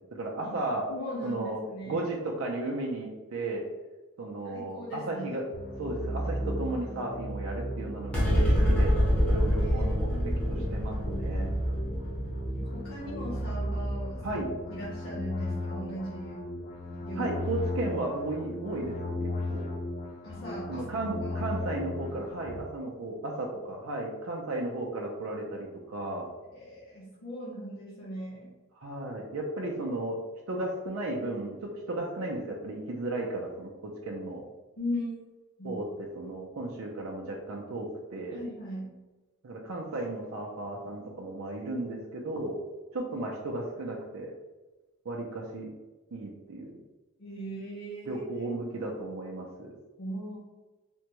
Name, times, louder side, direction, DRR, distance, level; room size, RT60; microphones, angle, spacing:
voice 1, 0.1-0.8 1.2-3.6 4.2-5.4 5.8-8.3 8.7-8.9 9.3-11.5 14.2-14.5 17.1-19.7 20.7-26.3 28.8-30.2 30.5-34.4 35.6-35.9 36.2-38.4 39.4-42.6 42.9-44.3 45.0-45.7 46.1-46.8 48.1-49.7, right 2 dB, 75° right, -2 dB, 0.5 m, -34 dB
voice 2, 0.9-2.0 4.4-5.4 9.3-10.7 12.5-14.4 14.7-16.3 17.0-17.4 20.2-20.8 21.2-21.4 26.4-28.5 34.8-35.2 35.6-35.8 38.3-38.9 47.2-48.4 50.0-50.4, equal, 85° left, -9 dB, 0.9 m, -39 dB
sound 1, 5.5-22.6, equal, 35° left, 0.4 m, -35 dB
sound 2, 8.1-14.8, equal, 5° left, 0.8 m, -27 dB
3.5 x 2.2 x 2.9 m, 1.2 s
head